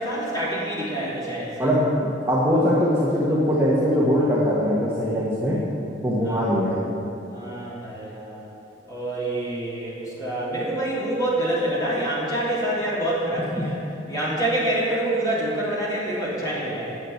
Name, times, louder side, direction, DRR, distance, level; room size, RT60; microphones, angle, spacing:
voice 1, 0.0-1.7 6.2-6.4 7.3-8.5 8.9-13.8 14.1-17.0, right 1 dB, 20° left, -8 dB, 3.1 m, -26 dB
voice 2, 1.6-5.6 6.0-6.7 13.6-13.7, equal, 15° right, -7 dB, 1.4 m, -21 dB
9.9 x 7.4 x 7.9 m, 2.8 s
head